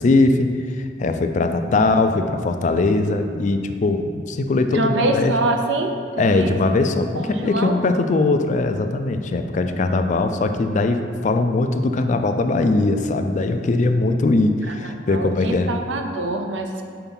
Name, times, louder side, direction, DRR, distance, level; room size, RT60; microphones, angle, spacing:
voice 1, 0.0-5.3 6.2-15.7, left 2 dB, 40° left, 7 dB, 0.3 m, -20 dB
voice 2, 1.8-2.1 4.7-6.6 7.1-7.7 14.7-14.8 15.1-16.9, right 2 dB, 75° right, 4 dB, 0.6 m, -25 dB
5.8 x 4.5 x 5.4 m, 2.2 s
head